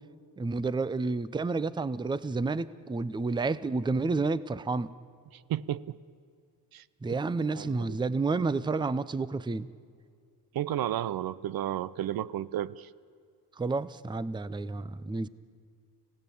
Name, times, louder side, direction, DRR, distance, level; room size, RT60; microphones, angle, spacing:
voice 1, 0.4-4.9 7.0-9.7 13.6-15.3, right 3 dB, 10° right, 17 dB, 0.6 m, -30 dB
voice 2, 5.5-6.0 6.7-6.8 7.6-8.0 10.5-12.9, right 12 dB, 60° right, 19 dB, 0.6 m, -32 dB
29.5 x 16.5 x 8.5 m, 2.2 s
cardioid pair, 115°, 40 cm